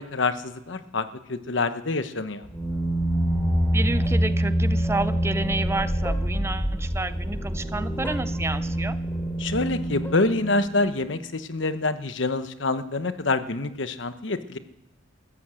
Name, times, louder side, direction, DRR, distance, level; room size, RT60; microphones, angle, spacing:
voice 1, 0.0-2.5 9.4-14.6, left 3 dB, 70° left, 11 dB, 1.1 m, -26 dB
sound 1, 2.4-11.0, right 1 dB, 10° left, 3.0 m, -26 dB
voice 2, 3.7-9.0, right 2 dB, 15° right, 13 dB, 0.6 m, -30 dB
14.5 x 13.0 x 7.7 m, 0.89 s
head